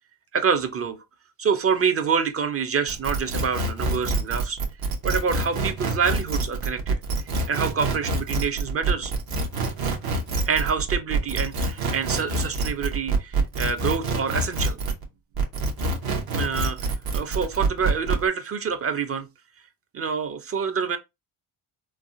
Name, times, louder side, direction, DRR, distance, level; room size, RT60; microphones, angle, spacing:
voice 1, 0.3-1.0 1.4-4.6 5.0-7.0 7.5-9.1 10.5-14.8 16.3-19.3 19.9-21.0, right 6 dB, 30° right, 0.6 m, -26 dB
sound 1, 2.9-15.0 15.4-18.2, right 3 dB, 50° right, 1.0 m, -26 dB
3.4 x 2.3 x 2.6 m
cardioid pair, 85°, 45 cm